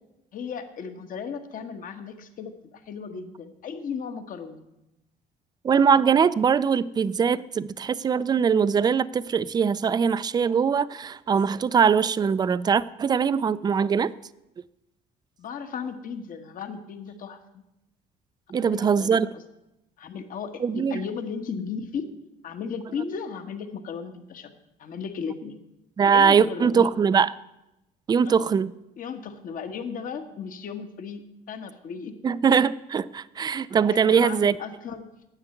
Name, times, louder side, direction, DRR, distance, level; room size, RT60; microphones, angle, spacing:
voice 1, 0.3-4.7 15.4-17.6 18.6-19.4 20.0-22.1 22.4-25.6 26.1-26.9 28.2-28.5 29.0-32.2 33.9-35.1, left 6 dB, 55° left, 7 dB, 1.3 m, -35 dB
voice 2, 5.6-14.1 18.5-19.3 20.6-21.0 26.0-27.3 28.1-28.7 32.2-34.5, right 6 dB, 25° right, 17 dB, 0.4 m, -21 dB
9.8 x 7.9 x 8.2 m, 0.90 s
cardioid pair, 110°, 17 cm